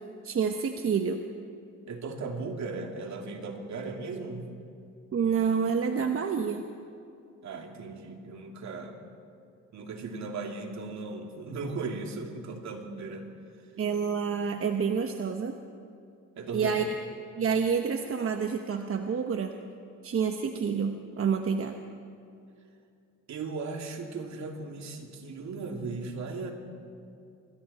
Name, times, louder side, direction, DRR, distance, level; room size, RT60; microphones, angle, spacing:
voice 1, 0.2-1.3 5.1-6.6 13.8-15.6 16.5-16.8 17.4-19.5 20.0-21.8, right 6 dB, 45° right, 5 dB, 1.2 m, -28 dB
voice 2, 1.9-4.5 7.4-9.0 9.7-13.3 16.4-16.7 23.3-26.5, right 3 dB, 65° right, 2 dB, 2.8 m, -37 dB
26.5 x 22.5 x 4.3 m, 2.5 s
cardioid pair, 90°, 30 cm